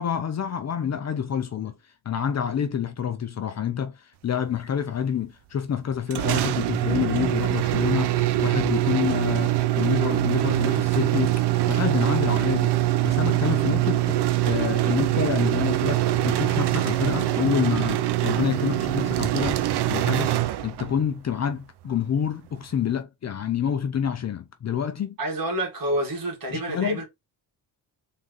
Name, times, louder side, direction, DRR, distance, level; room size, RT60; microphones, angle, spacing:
voice 1, 0.0-1.7 2.1-11.4 11.7-12.8 13.0-14.2 14.4-19.6 19.9-20.4 20.6-25.2 26.5-27.0, left 8 dB, 40° left, 0.6 m, -28 dB
sound 1, 6.1-21.0, right 15 dB, 70° right, 0.6 m, -23 dB
voice 2, 25.2-27.0, right 1 dB, 50° right, 2.2 m, -28 dB
3.8 x 3.2 x 3.8 m
cardioid pair, 130°, 42 cm